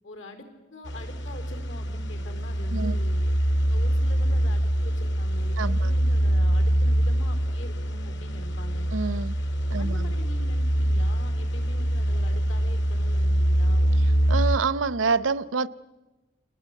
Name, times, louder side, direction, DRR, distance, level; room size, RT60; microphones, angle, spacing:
voice 1, 0.0-3.2 3.7-8.9 9.8-13.8, left 1 dB, 85° left, 4.3 m, -44 dB
sound 1, 0.9-14.6, right 1 dB, 65° left, 1.8 m, -24 dB
voice 2, 5.6-5.9 8.9-9.4 9.7-10.1 14.3-15.7, right 4 dB, 85° right, 0.7 m, -27 dB
28.5 x 19.5 x 8.4 m
head